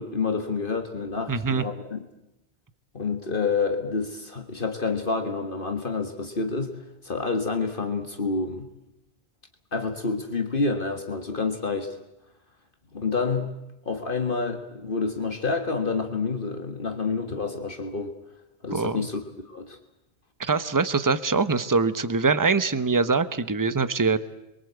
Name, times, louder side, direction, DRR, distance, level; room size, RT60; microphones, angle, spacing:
voice 1, 0.0-2.0 2.9-6.8 7.0-8.7 9.7-12.0 12.9-13.6 13.9-18.1 18.6-19.8, left 4 dB, 55° left, 5 dB, 1.8 m, -28 dB
voice 2, 1.3-1.6 18.7-19.1 20.4-24.2, right 4 dB, 20° right, 13 dB, 1.0 m, -23 dB
29.0 x 23.0 x 8.2 m, 0.91 s
omnidirectional pair, 1.1 m